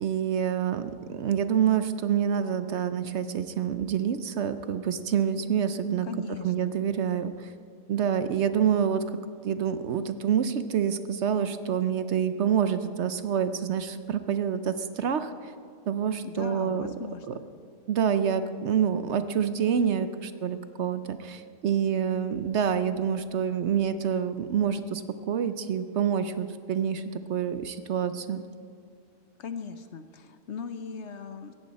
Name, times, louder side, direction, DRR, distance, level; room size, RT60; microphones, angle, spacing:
voice 1, 0.0-6.1 6.4-7.5 7.9-9.0 9.4-15.5 15.9-16.9 17.3-17.4 17.9-27.0 27.3-28.4, right 8 dB, 65° right, 11 dB, 0.9 m, -27 dB
voice 2, 6.0-6.7 16.2-17.4 29.4-31.5, left 6 dB, 60° left, 10 dB, 1.0 m, -39 dB
17.5 x 14.0 x 4.2 m, 2.4 s
omnidirectional pair, 1.4 m